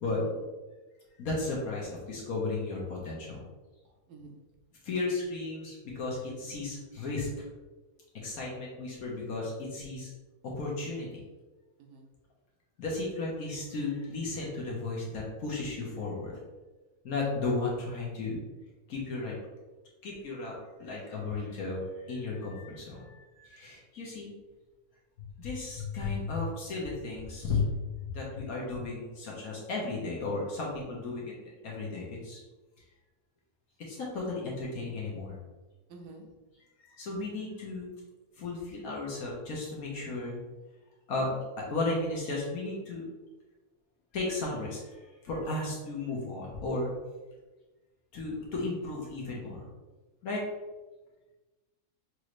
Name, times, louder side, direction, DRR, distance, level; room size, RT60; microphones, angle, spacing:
voice 1, 0.1-0.4 4.1-4.4 11.8-12.1 35.9-36.3 45.4-45.7, right 3 dB, 85° right, 3 dB, 1.3 m, -48 dB
voice 2, 1.2-3.4 4.8-7.3 8.2-10.1 10.4-11.2 12.8-16.4 17.0-18.4 18.9-19.4 20.0-24.3 25.4-27.6 28.0-31.3 31.6-32.4 33.8-35.4 36.8-37.9 38.4-40.4 41.1-41.4 41.7-43.0 44.1-44.9 45.2-46.9 48.1-49.6 50.2-50.4, left 3 dB, 65° left, -4 dB, 1.4 m, -34 dB
6.3 x 2.7 x 3.1 m, 1.2 s
omnidirectional pair, 1.6 m